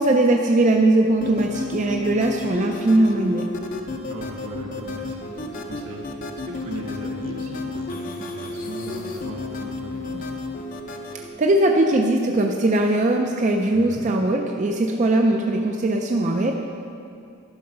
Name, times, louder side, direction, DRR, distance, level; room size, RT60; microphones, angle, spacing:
voice 1, 0.0-3.5 11.1-16.5, right 2 dB, 35° right, 2 dB, 0.4 m, -20 dB
sound 1, 1.2-11.3, left 2 dB, 40° left, 0.6 m, -32 dB
voice 2, 4.1-10.2 13.7-14.1, right 1 dB, 80° right, -2 dB, 1.6 m, -37 dB
11.0 x 5.6 x 5.5 m, 2.5 s
head